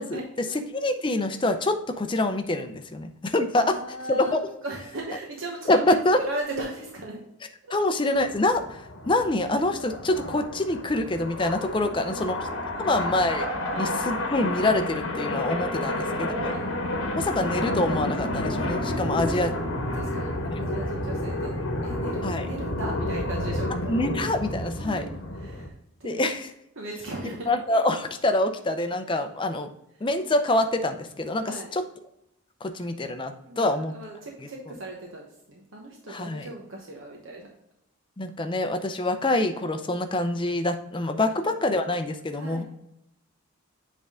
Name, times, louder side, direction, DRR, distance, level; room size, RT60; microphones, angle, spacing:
voice 1, 0.0-3.8 4.1-4.4 5.7-6.2 7.7-12.4 12.8-13.5 13.8-16.5 17.1-19.5 20.5-20.6 22.2-22.5 23.9-25.1 26.0-26.5 27.5-29.7 30.0-31.8 32.6-33.9 34.4-34.5 36.1-36.5 38.2-42.6, left 2 dB, 20° left, 8 dB, 0.5 m, -26 dB
voice 2, 3.7-4.3 4.6-7.2 7.7-7.8 11.8-13.0 13.7-14.0 15.8-16.0 16.3-16.7 18.9-19.5 19.9-23.9 24.8-25.7 26.0-26.3 26.8-27.5 31.4-31.7 33.4-35.2 35.5-37.5 41.2-41.3 42.3-42.6, right 2 dB, 65° right, -1 dB, 1.0 m, -38 dB
sound 1, 8.2-25.7, left 1 dB, 60° left, 1.1 m, -30 dB
7.9 x 3.6 x 3.6 m, 0.83 s
head